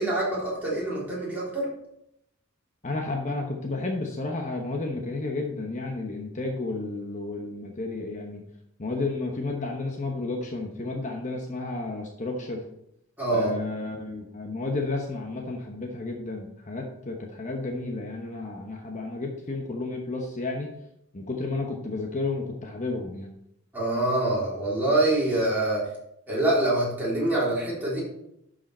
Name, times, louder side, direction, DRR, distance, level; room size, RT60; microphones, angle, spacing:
voice 1, 0.0-1.7 13.2-13.5 23.7-25.9 26.3-28.0, right 1 dB, 10° right, -7 dB, 3.8 m, -25 dB
voice 2, 2.8-8.4 8.8-12.6 13.3-20.7 21.1-23.3, left 3 dB, 35° left, 1 dB, 1.0 m, -32 dB
11.5 x 5.1 x 4.3 m, 0.78 s
head